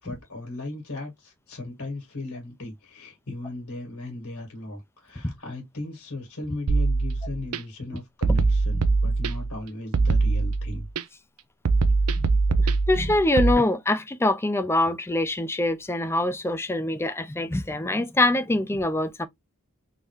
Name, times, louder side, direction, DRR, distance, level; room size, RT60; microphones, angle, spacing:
voice 1, 0.0-10.9, left 2 dB, 75° left, 1.6 m, -37 dB
sound 1, 6.7-7.6 8.2-9.6 9.9-11.0 11.7-13.5, right 3 dB, 80° right, 0.6 m, -22 dB
voice 2, 12.6-19.3, left 1 dB, 10° left, 0.4 m, -24 dB
3.7 x 2.7 x 3.1 m
head